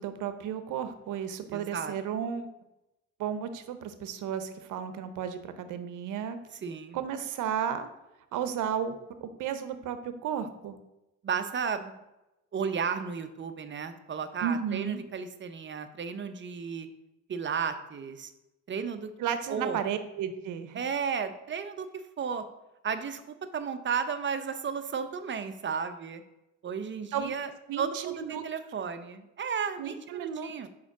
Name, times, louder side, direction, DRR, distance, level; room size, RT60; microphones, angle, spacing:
voice 1, 0.0-2.5 3.2-6.4 6.9-7.9 8.3-10.8 14.4-15.0 19.2-20.8 27.1-28.4 29.8-30.5, right 8 dB, 80° right, 10 dB, 0.7 m, -33 dB
voice 2, 1.5-1.9 6.5-7.0 11.2-12.0 12.5-16.9 17.3-18.3 18.7-19.1 19.5-19.8 20.7-22.4 22.8-26.2 26.6-27.5 27.8-30.7, right 6 dB, 40° right, 9 dB, 0.7 m, -34 dB
4.9 x 4.5 x 6.0 m, 0.94 s
cardioid pair, 90°, 30 cm